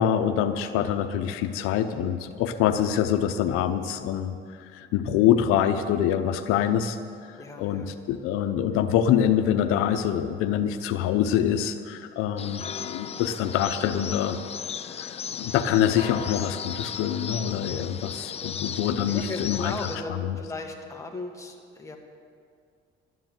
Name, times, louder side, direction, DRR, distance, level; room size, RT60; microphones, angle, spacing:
voice 1, 0.0-4.3 4.7-7.0 7.6-14.4 15.0-20.4, left 10 dB, 90° left, 8 dB, 0.7 m, -25 dB
voice 2, 7.4-8.0 18.4-22.0, left 3 dB, 15° left, 1 dB, 1.5 m, -37 dB
sound 1, 12.4-20.0, left 7 dB, 30° left, 0.5 m, -36 dB
12.5 x 9.5 x 7.7 m, 2.2 s
cardioid pair, 120°, 21 cm